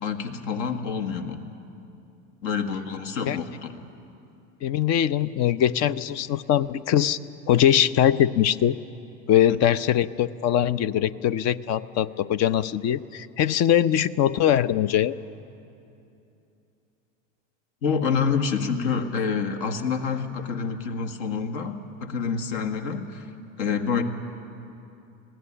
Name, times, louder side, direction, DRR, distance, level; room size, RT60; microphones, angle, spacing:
voice 1, 0.0-1.4 2.4-3.7 9.5-9.6 17.8-23.3 23.6-24.0, left 6 dB, 60° left, 6 dB, 1.8 m, -27 dB
voice 2, 4.6-7.2 7.5-8.8 9.3-15.1, left 10 dB, 40° left, 16 dB, 0.6 m, -22 dB
20.0 x 15.5 x 10.0 m, 2.7 s
hypercardioid pair, 95°, 40 cm